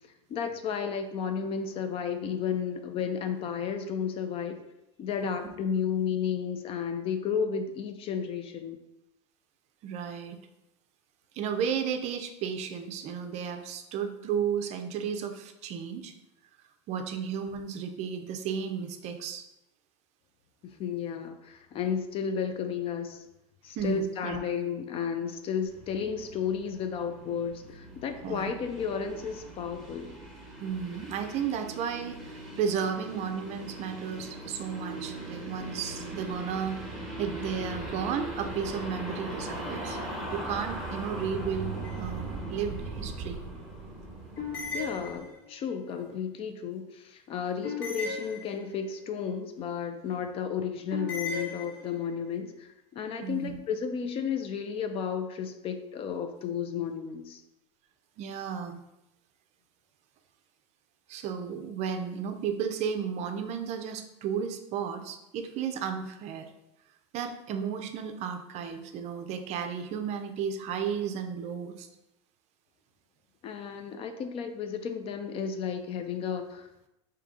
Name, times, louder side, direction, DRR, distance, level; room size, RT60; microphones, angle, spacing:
voice 1, 0.3-4.6 5.0-8.8 20.6-23.2 23.6-30.1 44.7-57.4 73.4-76.7, left 7 dB, 40° left, 8 dB, 0.4 m, -33 dB
voice 2, 9.8-10.4 11.3-16.1 16.9-19.4 23.7-24.4 28.2-28.5 30.6-36.8 37.2-40.0 40.3-43.4 46.0-46.1 53.2-53.6 58.2-58.8 61.1-66.5 67.1-71.9, right 7 dB, 45° right, 7 dB, 0.5 m, -33 dB
sound 1, 25.6-45.2, right 2 dB, ahead, 1.2 m, -40 dB
sound 2, 41.8-42.4 44.4-45.7 47.6-49.0 50.9-52.2, left 4 dB, 65° left, 1.4 m, -37 dB
3.6 x 2.8 x 3.7 m, 0.89 s
supercardioid pair, 110°, 15 cm